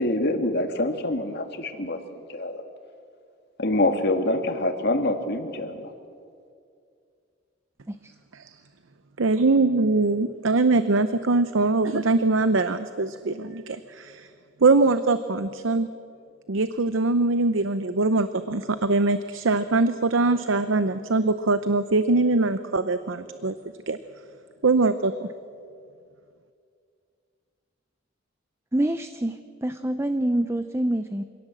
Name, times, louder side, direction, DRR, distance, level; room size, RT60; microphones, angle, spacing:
voice 1, 0.0-2.6 3.6-5.9, left 1 dB, 55° left, 6 dB, 1.9 m, -25 dB
voice 2, 9.2-14.3 14.6-15.9 16.5-23.5 23.9-24.0 24.6-25.3, right 3 dB, 90° right, 11 dB, 0.7 m, -22 dB
voice 3, 28.7-31.2, right 1 dB, 15° right, 10 dB, 0.6 m, -26 dB
25.5 x 17.5 x 7.6 m, 2.3 s
head